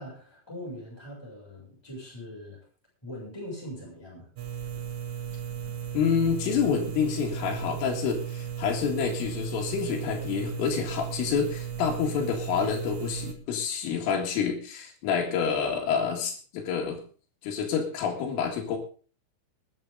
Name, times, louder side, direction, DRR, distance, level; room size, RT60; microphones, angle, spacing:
voice 1, 0.0-2.6 3.0-4.3, equal, 5° left, -3 dB, 6.4 m, -41 dB
sound 1, 4.4-13.3, right 9 dB, 80° right, 1.7 m, -35 dB
voice 2, 5.9-17.0 17.4-18.8, left 6 dB, 90° left, 0 dB, 4.6 m, -28 dB
20.5 x 10.0 x 3.8 m, 0.38 s
omnidirectional pair, 5.6 m